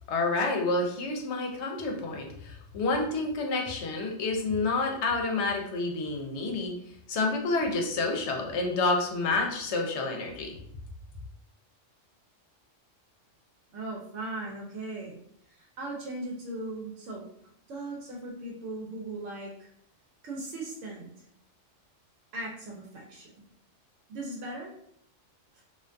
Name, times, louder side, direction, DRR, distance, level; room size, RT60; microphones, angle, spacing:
voice 1, 0.1-6.7 7.1-10.6, left 3 dB, 70° left, 2 dB, 0.8 m, -29 dB
voice 2, 13.7-15.2 15.5-17.3 17.7-19.7 20.2-21.1 22.3-23.4 24.1-24.7 25.6-25.7, right 2 dB, 85° right, -2 dB, 1.0 m, -38 dB
2.4 x 2.2 x 2.5 m, 0.69 s
omnidirectional pair, 1.2 m